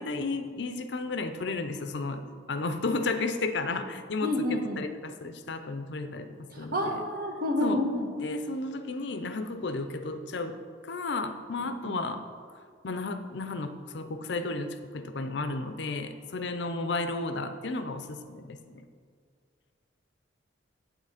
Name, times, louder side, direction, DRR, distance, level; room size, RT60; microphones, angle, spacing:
voice 1, 0.0-2.2 2.5-4.3 4.8-6.7 7.6-7.8 8.2-12.2 12.5-18.9, left 3 dB, 60° left, 9 dB, 0.6 m, -33 dB
voice 2, 4.2-4.8 6.5-8.1 11.6-11.9, left 1 dB, 50° right, 2 dB, 1.3 m, -29 dB
8.2 x 7.8 x 5.0 m, 2.1 s
head